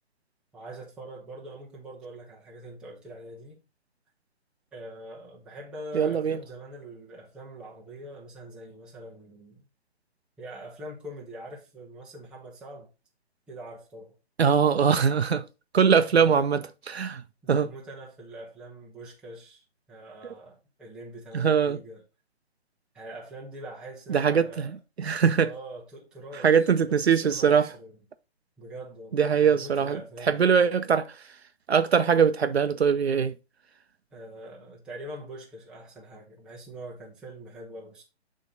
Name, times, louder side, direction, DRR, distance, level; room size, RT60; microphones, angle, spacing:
voice 1, 0.5-3.6 4.7-9.6 10.4-12.9 13.5-14.1 16.1-16.5 17.4-22.0 22.9-24.7 25.4-28.0 28.6-30.7 34.1-38.0, right 1 dB, 5° right, 0.7 m, -43 dB
voice 2, 5.9-6.4 14.4-15.4 15.7-16.6 16.9-17.2 17.5-17.7 21.3-21.8 24.1-25.5 26.4-27.7 29.1-30.0 30.3-31.0 31.7-33.3, right 7 dB, 70° right, 0.7 m, -22 dB
8.5 x 3.7 x 3.9 m
figure-of-eight pair, 140°, 34 cm